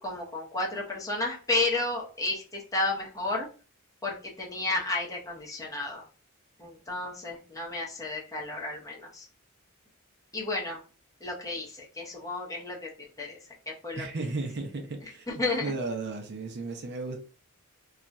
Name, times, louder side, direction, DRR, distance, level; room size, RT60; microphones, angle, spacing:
voice 1, 0.0-3.5 4.0-6.0 6.6-9.2 10.3-10.8 11.2-13.4 13.7-14.0 15.3-15.6, left 2 dB, 15° left, 0.8 m, -32 dB
voice 2, 14.0-17.2, right 3 dB, 50° right, 0.6 m, -35 dB
2.3 x 2.3 x 4.0 m
head